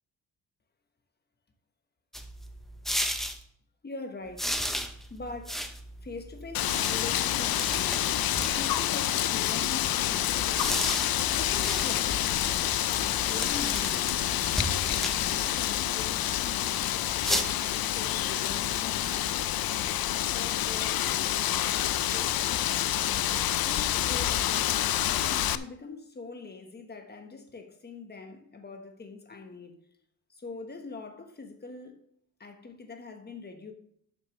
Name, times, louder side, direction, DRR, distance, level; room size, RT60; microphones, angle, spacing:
sound 1, 2.1-3.4 4.4-8.9 10.4-15.8 17.2-17.4, equal, ahead, 0.8 m, -35 dB
voice 1, 3.8-4.6 5.1-5.7 6.0-8.1 8.6-10.7 11.3-12.7 13.3-14.1 14.6-19.3 19.7-22.8 23.6-29.8 30.3-32.0 32.4-33.7, left 3 dB, 25° left, 1.3 m, -43 dB
Wind, 6.5-25.6, left 12 dB, 70° left, 0.5 m, -28 dB
sound 2, 7.9-8.7 9.1-11.1 11.5-13.5 13.9-15.9 16.3-17.5, right 3 dB, 60° right, 2.0 m, -51 dB
12.0 x 6.7 x 3.2 m
wide cardioid pair, 155°, 37 cm